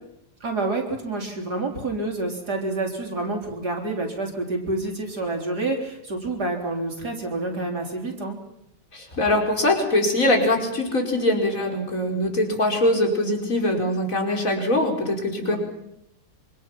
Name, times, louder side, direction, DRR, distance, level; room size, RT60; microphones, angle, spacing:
voice 1, 0.4-8.4 15.4-15.6, right 2 dB, 45° right, 2 dB, 4.1 m, -28 dB
voice 2, 8.9-15.6, left 1 dB, 35° left, 1 dB, 5.4 m, -22 dB
26.5 x 26.0 x 6.0 m, 0.78 s
omnidirectional pair, 2.4 m